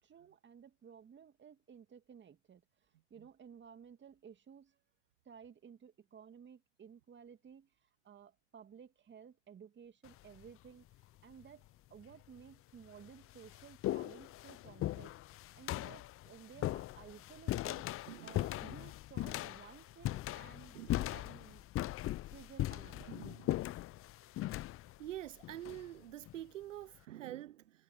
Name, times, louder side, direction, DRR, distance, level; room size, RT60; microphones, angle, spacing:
voice 1, 0.0-4.8 5.2-10.8 11.2-17.9 18.2-20.8 21.1-21.6 22.3-23.2, right 7 dB, 30° right, 2.5 m, -56 dB
sound 1, 10.1-10.5 11.4-11.5 12.4-12.5 12.9-26.4, left 15 dB, 35° left, 0.7 m, -39 dB
voice 2, 18.1-18.5 20.7-21.2 23.1-23.6 25.0-27.8, right 13 dB, 85° right, 0.7 m, -47 dB
hypercardioid pair, 80°, 37 cm